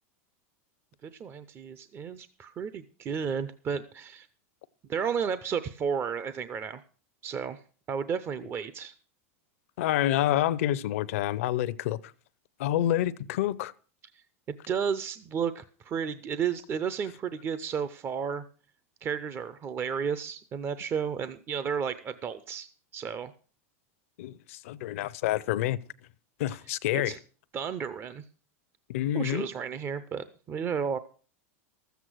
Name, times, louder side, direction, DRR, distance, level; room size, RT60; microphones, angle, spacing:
voice 1, 1.0-4.3 4.9-6.8 7.2-7.6 7.9-8.9 14.1-14.2 14.5-18.4 19.0-23.3 26.9-27.2 27.5-28.2 29.1-31.0, right 7 dB, 30° right, 0.6 m, -32 dB
voice 2, 9.8-12.0 12.6-13.7 24.2-25.8 26.4-27.2 28.9-29.5, left 13 dB, 70° left, 0.7 m, -28 dB
13.0 x 8.1 x 6.2 m
hypercardioid pair, 115°, 8 cm